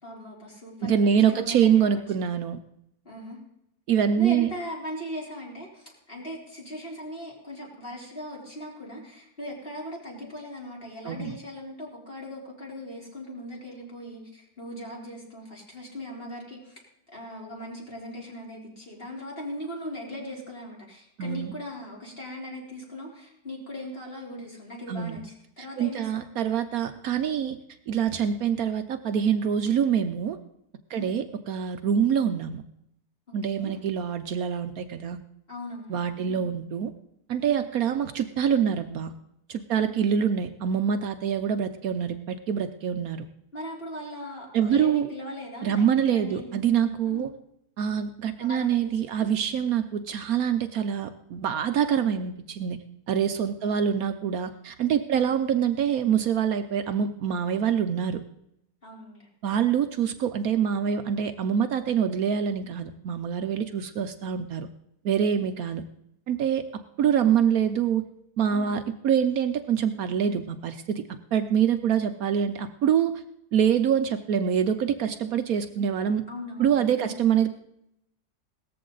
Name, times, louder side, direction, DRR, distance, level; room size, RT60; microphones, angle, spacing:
voice 1, 0.0-1.8 3.0-3.4 4.2-16.8 17.1-26.3 30.9-31.2 33.3-33.8 35.5-36.4 37.4-37.6 39.8-40.1 43.5-46.6 47.0-47.3 48.4-49.3 53.6-54.0 55.1-55.4 58.8-59.3 68.5-68.7 76.3-77.2, left 1 dB, 35° left, -2 dB, 4.0 m, -39 dB
voice 2, 0.8-2.6 3.9-4.5 11.0-11.4 21.2-21.5 24.9-25.2 25.8-27.6 27.9-30.4 30.9-32.6 33.3-35.2 35.9-36.9 37.3-39.1 39.5-43.3 44.5-45.1 45.6-47.3 47.8-52.8 53.1-58.2 59.4-64.7 65.0-65.8 66.3-66.6 67.0-68.0 68.4-71.0 71.3-73.2 73.5-76.2 76.6-77.5, right 8 dB, 70° right, 9 dB, 1.1 m, -25 dB
17.5 x 14.0 x 3.9 m, 0.78 s
omnidirectional pair, 1.7 m